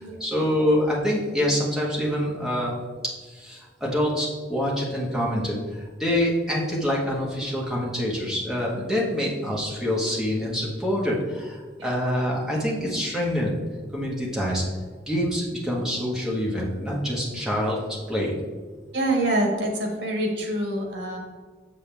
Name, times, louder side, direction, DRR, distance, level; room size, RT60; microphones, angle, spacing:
voice 1, 0.0-2.7 3.2-13.5 13.9-14.6 15.1-18.3, equal, 5° right, -4 dB, 1.6 m, -26 dB
voice 2, 18.9-21.2, right 1 dB, 85° right, 1 dB, 1.7 m, -25 dB
7.4 x 6.8 x 3.5 m, 1.5 s
head